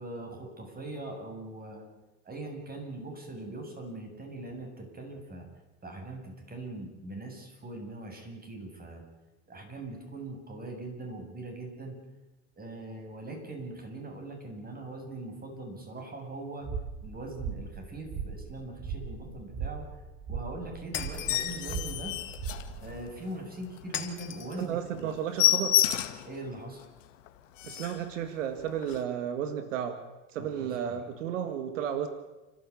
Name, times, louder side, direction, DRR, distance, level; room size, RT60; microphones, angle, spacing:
voice 1, 0.0-1.9 2.3-5.5 5.8-9.0 9.5-12.0 12.6-16.7 17.0-19.9 20.3-22.2 22.8-25.1 26.3-26.8 30.8-31.0, right 2 dB, 25° right, 3 dB, 7.4 m, -41 dB
sound 1, 16.6-23.0, right 6 dB, 50° right, 8.0 m, -39 dB
Shatter, 20.9-21.7 23.9-24.7, left 8 dB, 30° left, 2.9 m, -38 dB
sound 2, 21.1-23.3 23.7-23.8 24.2-24.3 24.6-24.7 25.0-26.3 26.8-26.9 27.3-27.4 27.6-28.1 28.8-29.0, left 13 dB, 90° left, 1.9 m, -28 dB
voice 2, 24.6-25.8 27.6-30.0 30.3-32.1, right 9 dB, 90° right, 9 dB, 2.1 m, -33 dB
29.5 x 14.0 x 8.6 m, 1.1 s
supercardioid pair, 105°, 37 cm